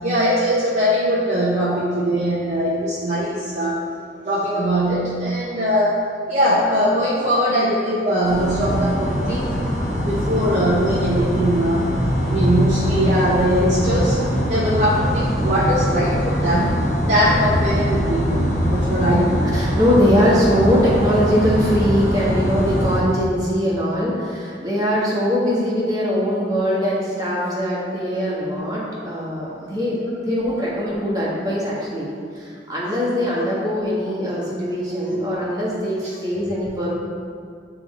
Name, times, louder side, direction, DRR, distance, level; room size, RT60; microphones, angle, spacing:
voice 1, 0.0-3.8 4.2-9.6 10.0-11.8 12.3-14.2 14.5-16.7 17.0-19.4 28.1-28.2 35.1-35.2, equal, 45° right, -7 dB, 0.8 m, -21 dB
sound 1, 8.2-23.0, equal, 60° left, 1.3 m, -22 dB
voice 2, 18.8-19.1 19.5-32.1 32.3-36.9, equal, 20° right, -7 dB, 1.5 m, -21 dB
9.3 x 3.4 x 3.7 m, 2.2 s
head